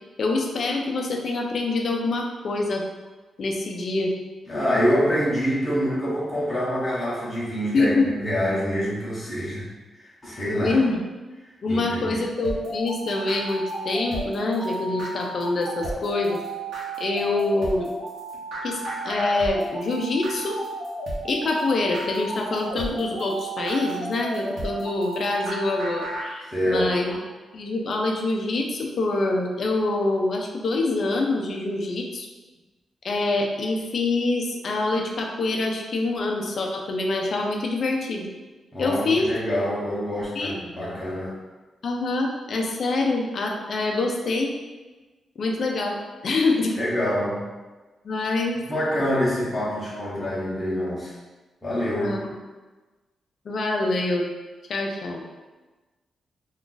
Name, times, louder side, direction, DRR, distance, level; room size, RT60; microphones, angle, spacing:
voice 1, 0.2-2.8 3.4-4.1 7.7-8.1 10.6-11.0 11.6-16.4 17.0-17.9 18.6-20.6 21.2-27.2 27.5-32.3 33.0-38.3 38.8-39.3 40.4-40.6 41.8-44.5 45.4-46.8 48.0-48.6 52.0-52.3 53.5-54.3 54.7-55.2, left 2 dB, 45° left, 1 dB, 0.4 m, -25 dB
voice 2, 4.5-7.9 8.2-9.7 10.0-10.8 11.7-12.2 26.5-26.9 38.7-41.4 46.8-47.5 48.7-51.1 51.6-52.2, equal, 10° left, -10 dB, 0.8 m, -26 dB
sound 1, 12.4-26.3, right 1 dB, 75° right, 0.8 m, -33 dB
2.4 x 2.3 x 3.8 m, 1.2 s
wide cardioid pair, 175°, 0 cm